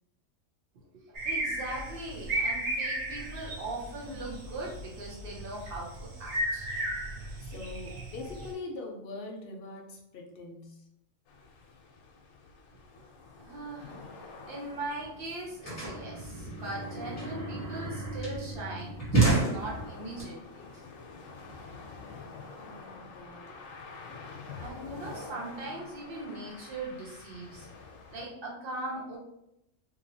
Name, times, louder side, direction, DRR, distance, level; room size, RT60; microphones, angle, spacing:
voice 1, 0.9-6.7 13.4-14.0 14.5-20.8 23.5-23.6 24.6-27.7 28.1-29.2, right 2 dB, 50° right, -3 dB, 0.8 m, -40 dB
sound 1, 1.1-8.5, right 1 dB, 80° right, 1.1 m, -35 dB
voice 2, 7.4-10.8 22.6-23.6, left 3 dB, 60° left, 1 dB, 0.6 m, -43 dB
sound 2, 11.3-28.3, left 4 dB, 80° left, 1.0 m, -48 dB
sound 3, 14.7-14.8 15.0-20.2, right 3 dB, 15° left, 0.7 m, -30 dB
2.9 x 2.7 x 2.6 m, 0.82 s
omnidirectional pair, 1.4 m